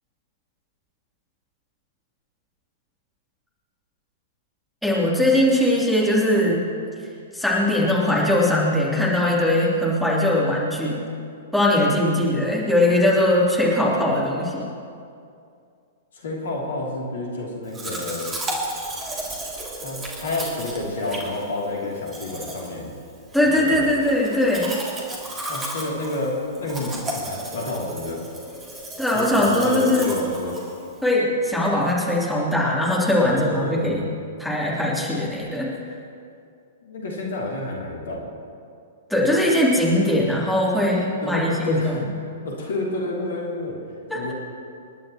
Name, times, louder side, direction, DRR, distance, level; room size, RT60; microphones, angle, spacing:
voice 1, 4.8-6.6 7.3-11.0 11.5-14.7 23.3-24.8 29.0-30.1 31.0-34.0 34.4-35.7 39.1-42.0 44.1-44.3, left 1 dB, ahead, -7 dB, 3.2 m, -20 dB
voice 2, 16.1-18.4 19.7-22.9 23.4-23.9 25.5-28.2 29.1-30.6 33.3-34.0 36.8-38.2 41.2-42.0 42.4-43.8 44.1-44.3, left 2 dB, 60° left, -2 dB, 3.1 m, -29 dB
Domestic sounds home sounds, 17.7-31.1, right 1 dB, 15° right, 2.8 m, -34 dB
28.5 x 11.0 x 3.1 m, 2.4 s
figure-of-eight pair, 110°, 0 cm